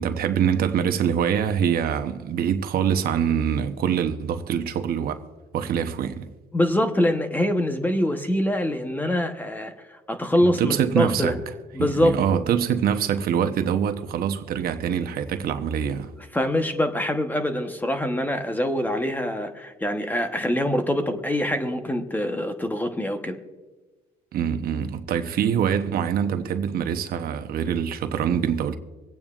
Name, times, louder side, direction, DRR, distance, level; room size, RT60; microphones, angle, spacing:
voice 1, 0.0-5.2 5.5-6.3 10.6-11.4 11.8-16.1 24.3-28.8, right 8 dB, 60° right, 0.9 m, -24 dB
voice 2, 6.5-9.7 10.1-11.3 11.7-12.2 16.3-23.4, left 1 dB, 10° left, 1.0 m, -24 dB
25.0 x 8.9 x 2.5 m
cardioid pair, 110°, 17 cm